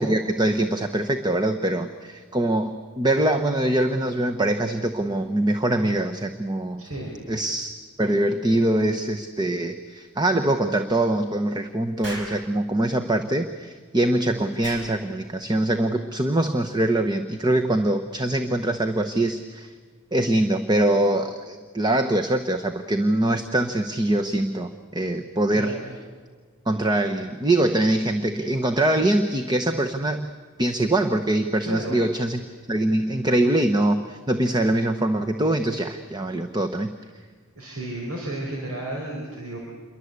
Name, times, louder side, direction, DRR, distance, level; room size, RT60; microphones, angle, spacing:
voice 1, 0.0-6.8 7.3-7.7 8.0-19.7 20.1-25.7 26.7-30.3 30.6-32.4 32.7-36.9, right 1 dB, 20° right, 6 dB, 1.0 m, -23 dB
voice 2, 6.8-7.1 25.5-25.8 31.6-32.0 37.5-39.6, right 1 dB, 90° right, -2 dB, 5.1 m, -32 dB
Explosion, 12.0-12.4 14.6-14.9, right 1 dB, 55° right, 6.7 m, -35 dB
28.0 x 23.0 x 8.2 m, 1.5 s
head